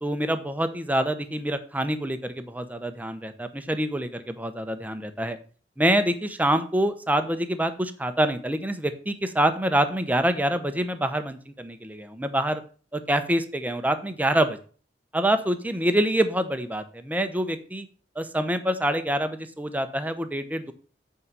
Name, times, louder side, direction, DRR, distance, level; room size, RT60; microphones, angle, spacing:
voice 1, 0.0-5.4 5.8-12.6 12.9-14.6 15.1-17.9 18.2-20.7, right 1 dB, 10° right, 9 dB, 0.8 m, -26 dB
8.5 x 4.8 x 5.5 m, 0.39 s
head